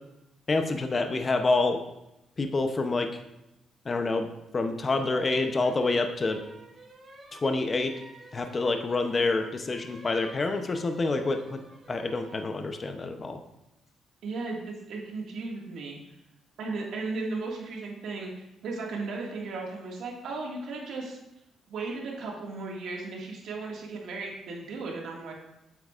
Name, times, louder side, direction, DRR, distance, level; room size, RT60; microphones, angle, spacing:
voice 1, 0.5-1.8 2.4-3.1 3.9-4.3 4.5-6.4 7.3-7.9 8.3-11.6 11.9-13.4, left 3 dB, 35° left, 6 dB, 0.7 m, -27 dB
sound 1, 5.0-12.5, right 2 dB, 40° right, 1.9 m, -52 dB
voice 2, 14.2-16.0 16.6-21.2 21.7-25.3, right 3 dB, 75° right, -1 dB, 1.9 m, -36 dB
8.5 x 8.0 x 2.5 m, 0.89 s
cardioid pair, 90°, 0 cm